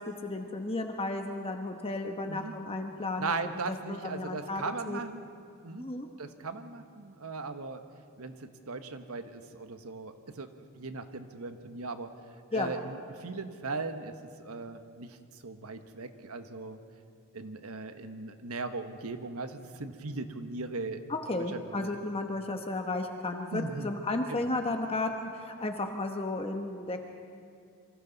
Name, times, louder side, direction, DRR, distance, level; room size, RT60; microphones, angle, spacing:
voice 1, 0.0-3.3 3.9-5.0 5.8-6.1 12.5-12.7 21.1-27.0, left 2 dB, 25° left, 4 dB, 1.0 m, -33 dB
voice 2, 3.2-5.3 5.6-5.8 6.2-7.8 8.2-12.1 12.5-14.1 14.4-15.2 15.4-16.8 17.3-21.0 21.3-21.9 23.5-23.9 24.3-24.5, right 3 dB, 80° right, 8 dB, 1.2 m, -38 dB
27.0 x 24.5 x 4.1 m, 2.4 s
head